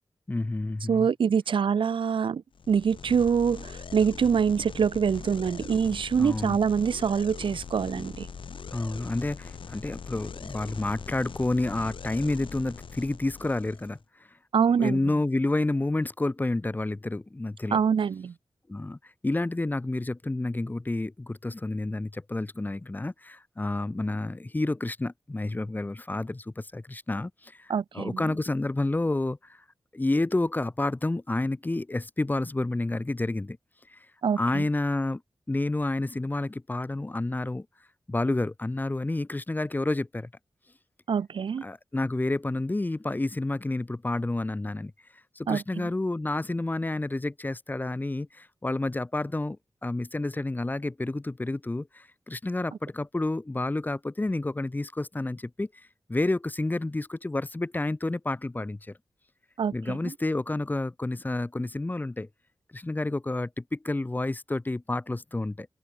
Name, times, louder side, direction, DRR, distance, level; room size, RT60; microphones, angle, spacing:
voice 1, 0.3-1.1 6.1-6.6 8.7-14.0 14.8-17.8 18.7-19.0 19.2-29.6 29.9-33.6 33.9-34.0 34.4-35.2 35.5-37.7 38.1-40.3 41.6-44.9 45.4-49.6 49.8-55.7 56.1-58.8 59.7-62.3 62.7-65.7, left 2 dB, 20° left, 2.7 m, -29 dB
voice 2, 0.9-8.3 14.5-15.0 17.7-18.3 27.7-28.3 34.2-34.7 41.1-41.6 45.5-45.9 59.6-60.1, right 6 dB, 75° right, 0.7 m, -25 dB
sound 1, 2.5-14.0, left 6 dB, 75° left, 4.5 m, -41 dB
wide cardioid pair, 150°, 9 cm